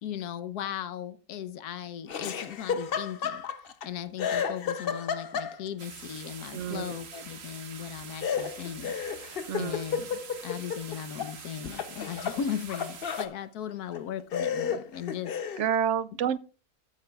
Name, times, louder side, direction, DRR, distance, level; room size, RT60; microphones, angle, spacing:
voice 1, 0.0-3.4 3.8-8.9 9.6-15.4, left 9 dB, 75° left, 1.3 m, -37 dB
Laughter, 2.1-3.9 4.2-5.8 8.2-11.3 11.7-13.3 13.9-14.0 14.3-15.7, left 7 dB, 50° left, 0.7 m, -32 dB
sound 1, 5.8-13.3, right 6 dB, 45° right, 1.3 m, -45 dB
voice 2, 6.5-7.0 9.5-9.9 15.6-16.4, right 8 dB, 65° right, 0.8 m, -29 dB
13.5 x 9.5 x 2.3 m
omnidirectional pair, 1.7 m